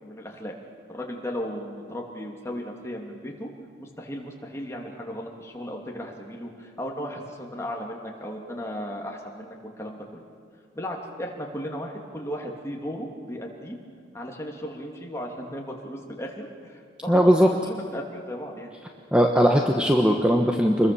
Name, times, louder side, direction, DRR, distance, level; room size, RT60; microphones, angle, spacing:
voice 1, 0.0-0.5 0.9-3.5 3.8-10.2 10.7-13.8 14.1-18.7, equal, 15° left, 0 dB, 3.0 m, -36 dB
voice 2, 17.1-17.5 19.1-20.9, equal, 5° right, 2 dB, 1.2 m, -19 dB
26.5 x 21.5 x 7.1 m, 2.1 s
head